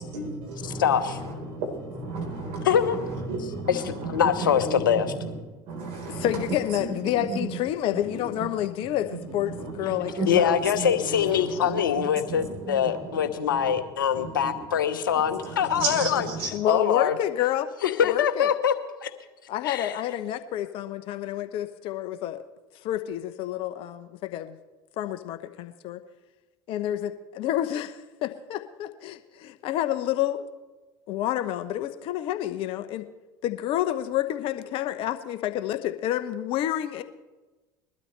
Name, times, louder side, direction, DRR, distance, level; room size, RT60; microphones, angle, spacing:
voice 1, 0.1-2.7 3.1-4.1 4.4-4.5 4.7-5.3 5.7-6.3 6.8-7.4 9.5-10.9 11.4-13.7 14.1-14.5 15.2-16.5, right 3 dB, 65° right, 1 dB, 4.3 m, -34 dB
voice 2, 0.6-1.2 2.6-3.0 3.7-5.1 10.3-17.1 17.8-18.7 19.0-19.1 19.6-19.9, left 8 dB, 85° left, 10 dB, 1.0 m, -24 dB
voice 3, 6.1-10.6 16.5-17.7 18.0-18.5 19.5-22.4 22.8-24.6 25.0-26.0 26.7-30.5 31.1-33.1 33.4-37.0, left 12 dB, 55° left, 10 dB, 1.0 m, -29 dB
21.5 x 12.5 x 3.3 m, 1.2 s
hypercardioid pair, 70°, 11 cm